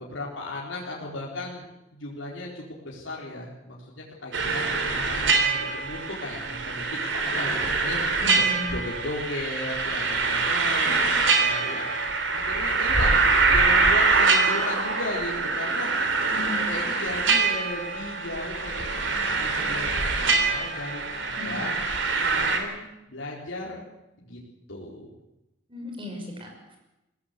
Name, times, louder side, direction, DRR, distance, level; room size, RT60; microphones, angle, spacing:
voice 1, 0.0-1.7 1.9-6.8 7.3-8.2 8.7-11.1 11.4-11.8 12.3-15.9 16.5-21.7 22.2-23.8 24.2-24.4 24.7-25.1, left 2 dB, 70° left, -4 dB, 4.1 m, -36 dB
sound 1, 4.3-22.6, right 4 dB, 70° right, 3.5 m, -24 dB
voice 2, 8.2-8.6 10.8-10.9 16.3-16.6 21.4-21.6 25.7-26.8, left 2 dB, 25° right, 2 dB, 6.2 m, -36 dB
21.5 x 17.0 x 8.2 m, 0.92 s
head